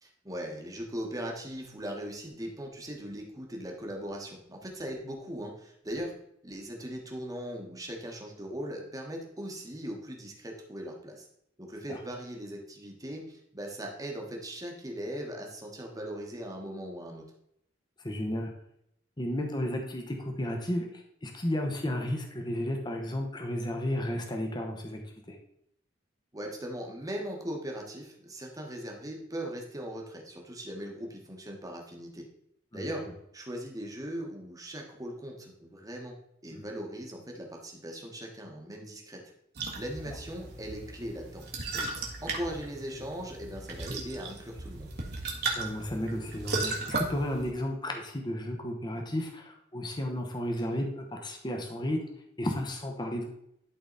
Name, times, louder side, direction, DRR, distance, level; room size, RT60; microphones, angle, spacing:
voice 1, 0.0-6.1 6.4-11.3 11.6-17.2 26.3-32.3 32.7-33.1 33.3-39.2 39.8-41.4 41.7-41.8 42.2-44.9, equal, 20° right, 0 dB, 1.3 m, -39 dB
voice 2, 18.0-18.5 19.2-25.0 25.3-25.4 32.7-32.9 36.5-36.6 45.6-52.0 52.4-53.2, left 1 dB, 25° left, 2 dB, 1.1 m, -33 dB
sound 1, 39.6-47.5, right 3 dB, 60° right, 1.6 m, -36 dB
11.5 x 4.0 x 4.0 m, 0.74 s
head